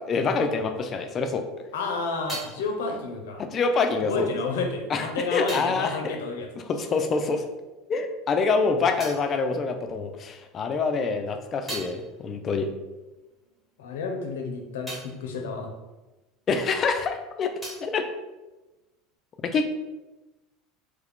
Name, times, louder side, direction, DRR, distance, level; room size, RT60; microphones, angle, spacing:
voice 1, 0.0-1.4 3.5-4.3 4.9-5.9 6.7-7.4 7.9-12.7 16.5-17.5 17.8-18.0 19.4-19.7, left 4 dB, 35° left, 6 dB, 0.4 m, -26 dB
voice 2, 1.7-3.4 4.0-6.5 13.8-15.7, left 3 dB, 90° left, 3 dB, 0.6 m, -30 dB
sound 1, 5.2-7.5 7.7-10.4 10.8-16.9 17.1-19.2, right 1 dB, 5° right, 1.2 m, -45 dB
3.2 x 2.3 x 3.6 m, 1.1 s
supercardioid pair, 105°, 0 cm